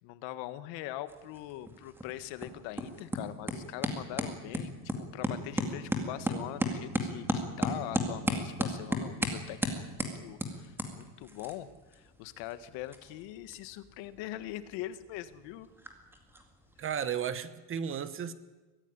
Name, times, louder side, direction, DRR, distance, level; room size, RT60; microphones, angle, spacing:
voice 1, 0.0-4.7 5.0-15.7, left 14 dB, 65° left, 12 dB, 1.6 m, -42 dB
sound 1, 1.1-17.0, equal, 5° right, 2.2 m, -37 dB
voice 2, 16.8-18.3, right 8 dB, 25° right, 13 dB, 1.0 m, -34 dB
23.0 x 15.5 x 9.8 m, 1.2 s
cardioid pair, 175°, 47 cm